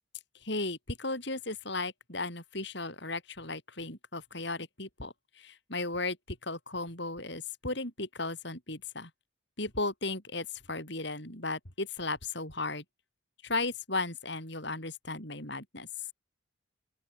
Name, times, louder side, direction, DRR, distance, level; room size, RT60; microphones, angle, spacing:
voice 1, 0.4-9.1 9.6-12.8 13.4-15.9, left 2 dB, 55° left, 7.4 m, -35 dB
open air
head